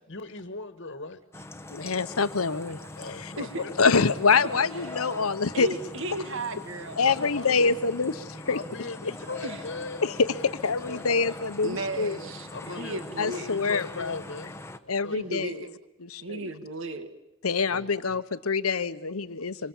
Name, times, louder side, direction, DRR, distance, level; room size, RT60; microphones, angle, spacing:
voice 1, 0.1-1.2 2.9-4.0 4.4-4.9 7.0-7.7 8.4-11.5 12.5-14.5 14.8-15.5 17.7-17.9, left 3 dB, 55° left, 10 dB, 1.5 m, -40 dB
sound 1, 1.3-14.8, left 2 dB, 10° left, 0.9 m, -42 dB
voice 2, 1.7-2.8 3.2-3.3 3.8-5.7 7.0-8.6 10.0-12.2 13.2-14.2 14.9-15.5 16.0-16.5 17.4-19.7, left 4 dB, 85° left, 13 dB, 1.0 m, -25 dB
voice 3, 5.5-7.0 7.5-7.7 9.4-9.6 11.6-13.5 15.1-15.7 16.2-17.1, right 2 dB, 60° right, 9 dB, 1.8 m, -35 dB
26.0 x 25.0 x 7.4 m, 0.85 s
head